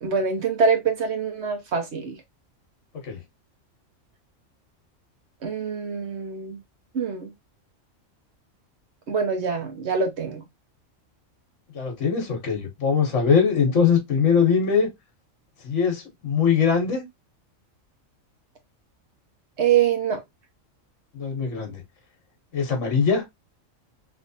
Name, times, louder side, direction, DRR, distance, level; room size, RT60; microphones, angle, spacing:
voice 1, 0.0-2.2 5.4-6.6 6.9-7.3 9.1-10.4 19.6-20.2, right 6 dB, 60° right, 1.1 m, -24 dB
voice 2, 11.7-14.9 15.6-17.0 21.1-21.8 22.5-23.2, left 6 dB, 65° left, 1.4 m, -21 dB
3.2 x 2.9 x 2.6 m
omnidirectional pair, 1.4 m